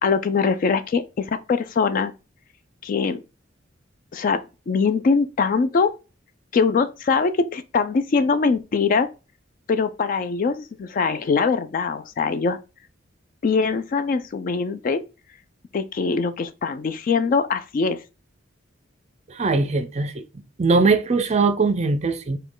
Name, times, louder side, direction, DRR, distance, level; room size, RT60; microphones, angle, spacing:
voice 1, 0.0-2.1 2.8-3.2 4.1-5.9 6.5-9.1 9.7-12.6 13.4-15.0 15.7-18.0, left 5 dB, 45° left, 0.3 m, -22 dB
voice 2, 19.3-20.2 20.6-22.4, right 3 dB, 35° right, 0.5 m, -20 dB
5.0 x 2.2 x 3.8 m
head